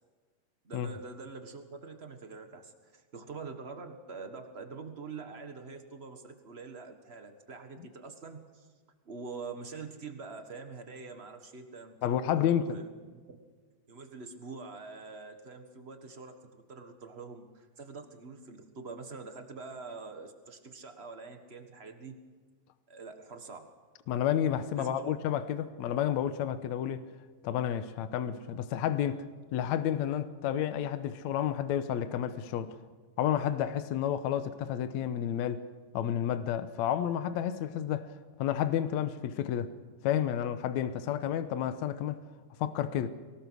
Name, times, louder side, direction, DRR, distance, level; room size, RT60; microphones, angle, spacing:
voice 1, 0.6-8.7 9.0-13.2 13.9-22.2 22.9-23.7 24.7-25.1, right 4 dB, 85° right, 0.5 m, -45 dB
voice 2, 12.0-12.8 24.1-27.1 27.4-29.2 29.5-32.8 33.2-35.6 35.9-38.1 38.4-39.7 40.0-42.2 42.6-43.1, left 10 dB, 70° left, 2.0 m, -30 dB
23.5 x 19.0 x 6.3 m
omnidirectional pair, 3.8 m